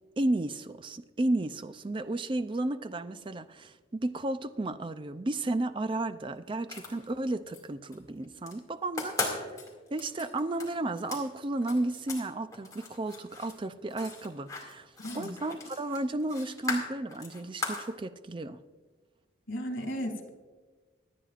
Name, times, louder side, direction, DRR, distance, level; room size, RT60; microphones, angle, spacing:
voice 1, 0.2-9.5 9.9-18.6, right 2 dB, 25° right, 11 dB, 0.4 m, -33 dB
sound 1, 6.5-7.6 7.9-8.5 8.9-12.3 12.5-17.9, left 3 dB, 20° left, 2.3 m, -38 dB
voice 2, 15.0-15.3 19.5-20.3, equal, 90° left, 4 dB, 2.4 m, -35 dB
25.0 x 9.4 x 2.5 m, 1.4 s
head